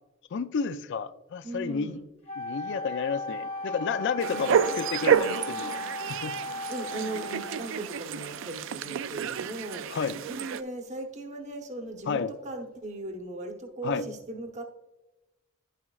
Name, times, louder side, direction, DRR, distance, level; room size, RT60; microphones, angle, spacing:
voice 1, 0.3-2.0 2.4-5.7 6.1-6.4 9.9-10.2 12.1-12.3 13.8-14.0, left 5 dB, 60° left, 13 dB, 0.4 m, -31 dB
voice 2, 1.4-2.1 4.3-4.6 6.7-9.9 10.3-14.6, right 2 dB, 35° right, 4 dB, 0.8 m, -38 dB
Wind instrument woodwind instrument, 2.3-7.7, left 1 dB, 30° left, 0.8 m, -36 dB
sound 1, 2.9-10.8, left 4 dB, 80° left, 0.8 m, -50 dB
sound 2, 4.2-10.6, right 8 dB, 65° right, 0.3 m, -29 dB
10.5 x 5.9 x 2.3 m, 1.0 s
head